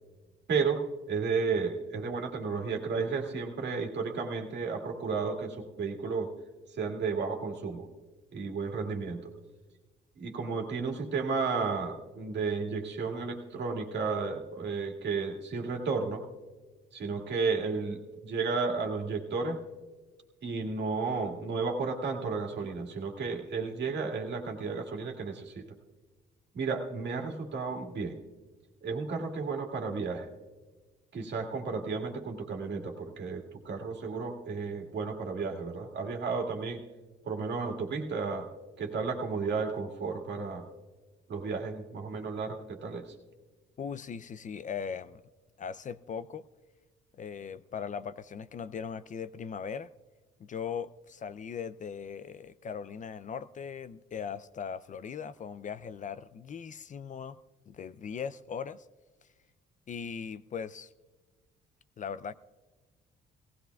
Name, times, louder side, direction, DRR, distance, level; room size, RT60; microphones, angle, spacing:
voice 1, 0.5-6.3 6.7-7.9 8.3-9.3 10.2-16.2 16.9-19.6 20.4-25.6 26.5-28.2 28.8-30.3 31.1-36.8 37.3-38.5 38.8-40.6 41.3-43.1, right 4 dB, 60° right, 2 dB, 1.9 m, -33 dB
voice 2, 43.8-45.2 45.6-46.4 47.2-49.9 50.4-57.4 57.7-58.9 59.9-60.9 62.0-62.3, left 6 dB, 40° left, 14 dB, 0.4 m, -39 dB
18.0 x 16.0 x 2.3 m, 1.3 s
cardioid pair, 90°, 20 cm